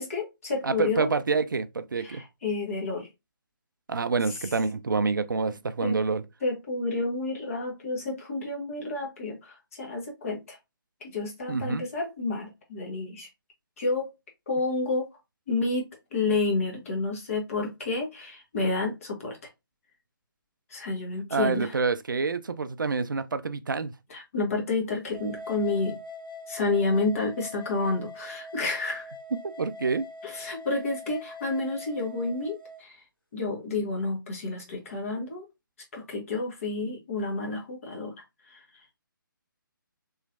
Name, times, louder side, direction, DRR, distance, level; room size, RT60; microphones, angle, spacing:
voice 1, 0.0-1.1 2.0-3.1 5.8-6.0 6.4-10.6 11.0-13.3 13.8-14.1 14.5-15.1 15.5-19.4 20.7-21.7 24.1-26.0 26.5-29.1 30.2-33.0 33.3-35.5 35.9-38.1 38.5-38.6, left 3 dB, 40° left, 1.2 m, -30 dB
voice 2, 0.6-2.2 3.9-6.2 11.5-11.8 21.3-23.9 29.6-30.0, right 4 dB, 65° right, 0.4 m, -27 dB
sound 1, 25.1-32.8, left 3 dB, 80° left, 0.9 m, -43 dB
3.1 x 3.0 x 2.4 m
figure-of-eight pair, 140°, 12 cm